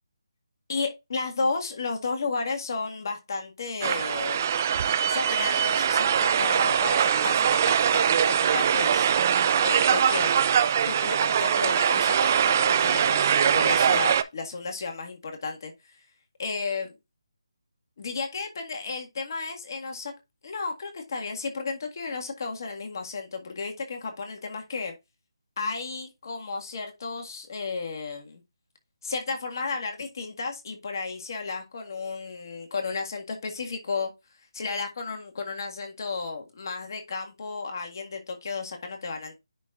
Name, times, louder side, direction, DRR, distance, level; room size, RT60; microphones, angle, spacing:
voice 1, 0.7-4.4 5.1-9.1 9.6-10.3 10.9-15.7 16.4-16.9 18.0-20.1 20.4-24.9 25.6-28.4 29.0-34.1 34.5-39.4, left 4 dB, 45° left, 1.7 m, -33 dB
sound 1, 3.8-14.2, right 8 dB, 30° right, 0.4 m, -22 dB
10.0 x 4.2 x 2.4 m
figure-of-eight pair, 165°, 3 cm